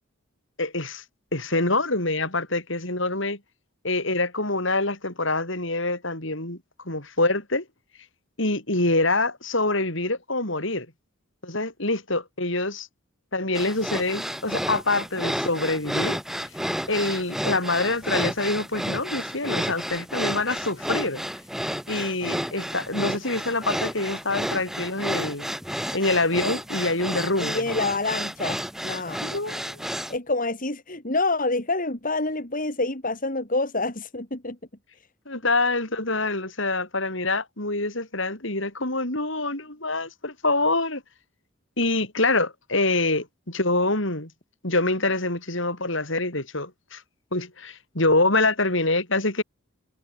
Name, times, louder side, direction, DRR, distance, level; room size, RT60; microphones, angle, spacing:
voice 1, 0.6-1.0 1.3-3.4 3.8-6.6 6.9-7.6 8.4-10.9 11.4-12.9 13.3-16.2 16.9-21.2 21.9-25.5 25.9-27.6 29.2-29.8 35.3-41.0 41.8-44.3 44.6-47.0 47.3-49.4, left 2 dB, 60° left, 7.1 m, -25 dB
sound 1, 13.6-30.2, equal, ahead, 4.6 m, -31 dB
voice 2, 27.4-29.2 30.1-34.6 35.0-35.1, left 2 dB, 40° left, 3.3 m, -27 dB
head